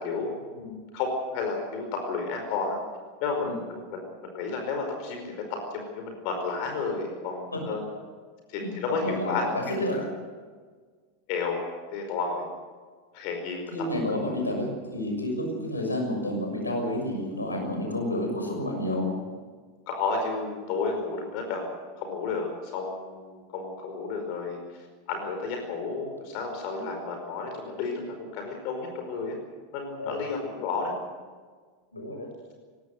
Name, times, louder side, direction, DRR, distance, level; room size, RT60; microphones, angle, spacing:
voice 1, 0.0-2.8 3.2-7.8 8.5-9.7 11.3-11.6 11.9-12.4 13.1-13.7 19.9-21.7 21.9-24.6 25.1-29.4 29.7-30.9, left 4 dB, 45° left, 3 dB, 5.0 m, -32 dB
voice 2, 8.5-10.1 13.7-19.1 26.7-26.9 30.0-30.2 31.9-32.3, left 1 dB, 80° left, 2 dB, 6.5 m, -30 dB
23.5 x 19.5 x 6.7 m, 1.5 s
figure-of-eight pair, 85°, 0 cm